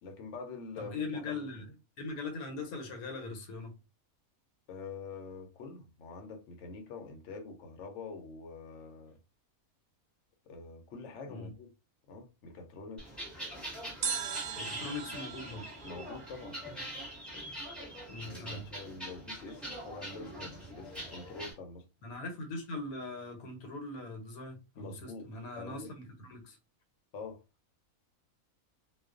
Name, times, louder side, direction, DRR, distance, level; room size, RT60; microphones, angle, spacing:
voice 1, 0.0-1.5 4.7-9.2 10.5-11.7 12.1-13.2 15.8-16.6 18.1-21.8 24.8-25.3 25.6-25.9 27.1-27.4, left 4 dB, 65° left, 0.8 m, -45 dB
voice 2, 0.8-1.7 2.0-3.7 11.3-11.5 14.6-15.7 18.1-18.6 22.0-26.6, left 3 dB, 85° left, 1.2 m, -41 dB
sound 1, 13.0-21.5, equal, ahead, 0.6 m, -43 dB
sound 2, 14.0-17.1 17.4-17.5, right 7 dB, 70° right, 0.8 m, -39 dB
2.3 x 2.2 x 2.3 m
omnidirectional pair, 1.5 m